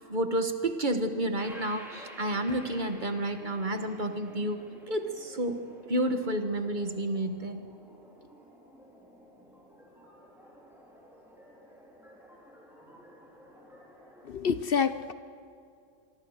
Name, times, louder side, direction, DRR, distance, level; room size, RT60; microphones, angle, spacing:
voice 1, 0.1-4.6 4.9-5.6 5.9-7.6, right 1 dB, 35° right, 7 dB, 1.7 m, -30 dB
sound 1, 1.4-14.3, equal, ahead, 4.6 m, -52 dB
voice 2, 14.2-15.1, left 6 dB, 50° left, 12 dB, 0.9 m, -27 dB
26.0 x 24.0 x 6.6 m, 2.4 s
omnidirectional pair, 1.4 m